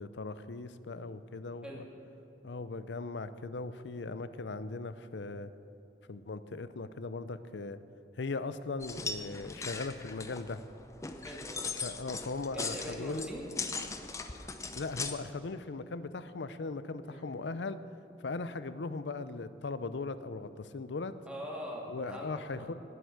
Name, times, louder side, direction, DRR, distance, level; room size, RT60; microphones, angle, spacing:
voice 1, 0.0-1.8 2.4-5.5 6.1-7.8 8.2-10.6 11.8-13.3 14.8-17.8 18.2-21.1 21.9-22.7, left 3 dB, 85° left, 13 dB, 0.6 m, -39 dB
sound 1, 8.8-15.1, left 4 dB, 15° left, 0.7 m, -39 dB
voice 2, 11.2-11.6 12.5-13.5 17.0-17.2 21.3-22.7, equal, 5° right, -3 dB, 2.5 m, -42 dB
19.0 x 8.1 x 6.5 m, 2.9 s
head